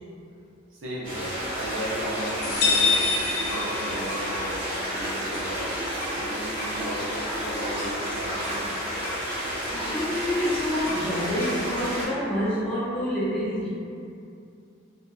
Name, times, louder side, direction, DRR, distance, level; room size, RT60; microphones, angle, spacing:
voice 1, 0.7-3.1 3.4-4.6 4.9-5.7 6.1-8.8, equal, 85° right, -6 dB, 0.5 m, -35 dB
sound 1, 1.0-12.1, equal, 30° right, 1.1 m, -31 dB
sound 2, 2.3-3.8 4.1-4.4 4.7-6.2 6.6-6.8 7.2-8.7 9.0-9.3 9.6-11.2 11.4-11.7, right 1 dB, 70° right, 1.2 m, -41 dB
sound 3, 2.4-4.4, left 4 dB, 55° left, 0.4 m, -25 dB
voice 2, 9.7-13.7, equal, 5° left, -12 dB, 0.7 m, -27 dB
2.6 x 2.1 x 2.2 m, 2.5 s
head